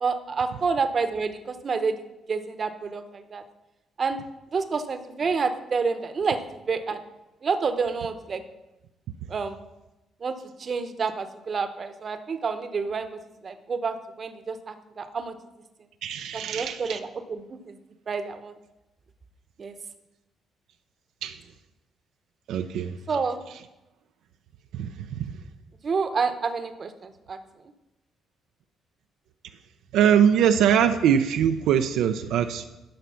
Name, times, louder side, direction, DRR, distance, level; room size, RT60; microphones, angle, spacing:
voice 1, 0.0-2.0 2.3-3.4 4.0-4.2 4.5-6.4 6.7-7.0 7.4-8.4 9.3-9.6 10.2-13.1 13.4-15.3 16.3-17.8 18.1-18.5 19.6-19.7 23.1-23.4 25.8-27.4, right 5 dB, 45° right, 9 dB, 0.9 m, -28 dB
voice 2, 16.0-17.0 21.2-21.4 22.5-22.9 24.7-24.9 25.2-25.3 29.9-32.6, right 9 dB, 85° right, 7 dB, 0.5 m, -22 dB
12.0 x 5.1 x 5.7 m, 0.98 s
cardioid pair, 90°, 0 cm